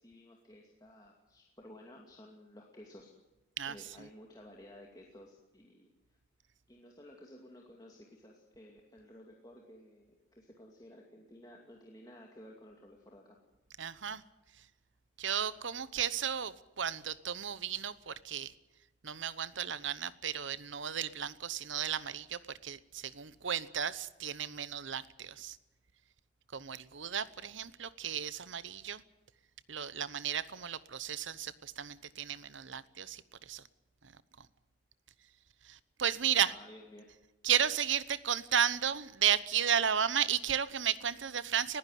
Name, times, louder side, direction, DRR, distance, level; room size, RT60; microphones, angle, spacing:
voice 1, 0.0-3.1 3.6-5.9 6.7-13.4 36.4-37.1, left 1 dB, 20° left, -1 dB, 2.5 m, -54 dB
voice 2, 13.8-14.2 15.2-18.5 19.0-25.6 26.5-29.0 29.7-33.6 35.7-36.5 37.4-41.8, right 8 dB, 75° right, 16 dB, 1.0 m, -34 dB
20.5 x 15.5 x 9.3 m, 1.1 s
head